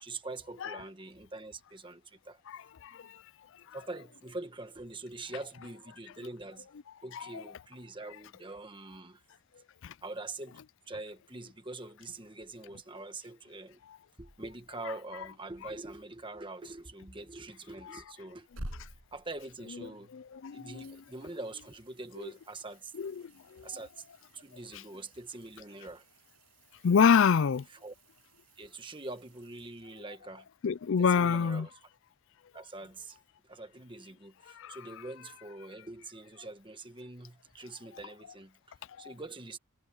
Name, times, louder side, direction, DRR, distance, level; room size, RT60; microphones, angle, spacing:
voice 1, 0.0-2.4 3.7-6.7 7.0-9.2 10.0-10.6 10.9-13.8 14.2-18.5 18.8-20.1 20.5-22.9 23.6-24.1 24.3-26.0 27.8-27.9 28.6-30.5 31.0-31.7 32.5-33.2 33.4-39.6, right 2 dB, 20° right, 1.4 m, -44 dB
voice 2, 2.5-3.2 3.7-3.8 7.1-7.4 9.8-9.9 17.8-18.0 20.1-21.0 22.2-22.3 23.0-23.7 24.7-24.8 26.8-27.7 30.6-31.7 34.5-34.8 39.0-39.1, left 6 dB, 55° left, 0.4 m, -28 dB
sound 1, 18.2-20.4 20.8-30.4 33.2-33.3, right 1 dB, 70° right, 6.6 m, -52 dB
head